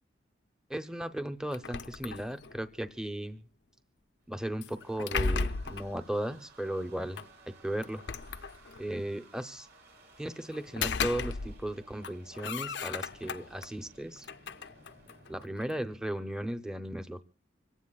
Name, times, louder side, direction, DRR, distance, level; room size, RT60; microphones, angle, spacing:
voice 1, 0.7-3.4 4.3-7.2 7.5-8.0 8.8-9.7 10.2-14.3 15.3-17.2, right 1 dB, 5° right, 9 dB, 0.7 m, -36 dB
sound 1, 1.5-2.6 4.6-5.9 7.2-7.3 7.8-8.9 10.5-11.7 12.0-13.7 14.2-15.8, left 4 dB, 75° left, 0.6 m, -35 dB
sound 2, 4.2-15.5, right 3 dB, 65° right, 2.7 m, -58 dB
25.5 x 17.0 x 2.4 m, 0.37 s
head